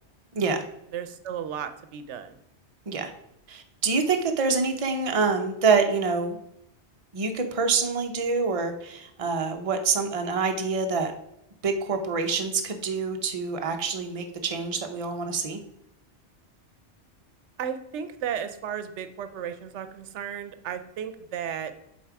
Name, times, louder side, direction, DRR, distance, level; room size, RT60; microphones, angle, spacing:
voice 1, 0.3-0.6 2.9-3.1 3.5-6.4 7.1-11.1 11.6-15.6, right 4 dB, 35° right, 5 dB, 0.7 m, -26 dB
voice 2, 0.9-2.4 17.6-21.7, right 8 dB, 90° right, 10 dB, 1.0 m, -34 dB
7.4 x 4.3 x 4.6 m, 0.82 s
omnidirectional pair, 1.2 m